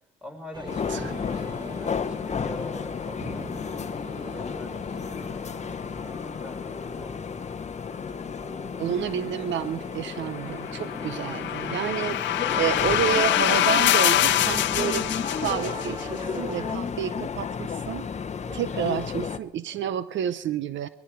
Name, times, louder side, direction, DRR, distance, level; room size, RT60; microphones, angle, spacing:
voice 1, 0.2-3.9 4.2-5.8 6.4-7.3 18.4-19.1 19.8-19.9, equal, 5° right, 4 dB, 3.8 m, -44 dB
sound 1, 0.5-16.8, equal, 20° right, 1.7 m, -40 dB
sound 2, 0.7-19.4, left 6 dB, 35° left, 0.8 m, -33 dB
voice 2, 8.8-18.1 18.5-20.9, right 10 dB, 70° right, 14 dB, 0.7 m, -30 dB
sound 3, 10.8-16.0, left 14 dB, 65° left, 0.5 m, -24 dB
20.5 x 14.0 x 4.5 m, 0.82 s
cardioid pair, 90°, 20 cm